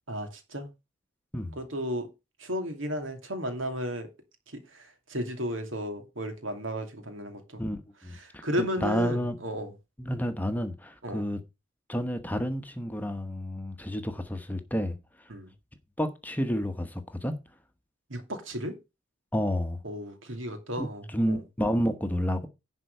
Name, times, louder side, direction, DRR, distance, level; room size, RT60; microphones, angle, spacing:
voice 1, 0.1-0.7 1.6-2.1 2.4-4.1 4.5-7.6 8.1-9.7 11.0-11.2 15.3-15.5 18.1-18.7 19.8-21.4, equal, 75° right, 2.6 m, -34 dB
voice 2, 7.6-9.4 10.0-11.4 11.9-15.0 16.0-17.4 19.3-19.8 20.8-22.5, equal, 10° left, 1.0 m, -30 dB
11.0 x 4.5 x 6.7 m
head